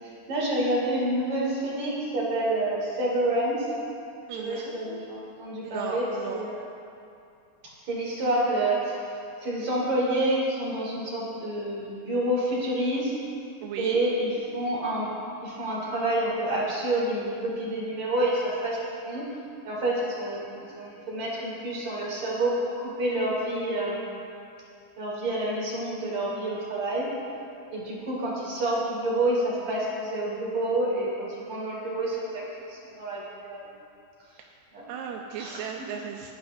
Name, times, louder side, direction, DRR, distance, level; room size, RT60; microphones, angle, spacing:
voice 1, 0.0-3.7 4.3-6.6 7.9-9.1 9.4-13.1 13.8-15.2 15.4-19.3 19.6-24.1 25.0-27.1 27.7-33.7 34.7-34.8 35.4-35.6, right 1 dB, 60° right, -6 dB, 5.0 m, -28 dB
voice 2, 4.3-4.8 5.6-6.4 13.6-14.0 34.4-34.6 34.9-36.3, right 7 dB, 75° right, 1 dB, 2.0 m, -36 dB
28.0 x 11.5 x 2.7 m, 2.5 s
omnidirectional pair, 3.7 m